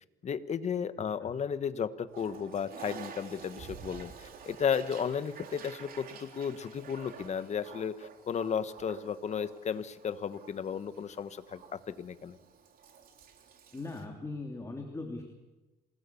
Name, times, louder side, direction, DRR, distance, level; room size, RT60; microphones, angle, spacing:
voice 1, 0.2-12.4, left 7 dB, 40° left, 12 dB, 1.4 m, -34 dB
Toilet flush, 2.1-14.0, right 6 dB, 60° right, 3.4 m, -49 dB
voice 2, 13.7-15.2, left 3 dB, 20° left, 2 dB, 3.1 m, -39 dB
27.0 x 19.0 x 7.1 m, 1.1 s
cardioid pair, 105°, 17 cm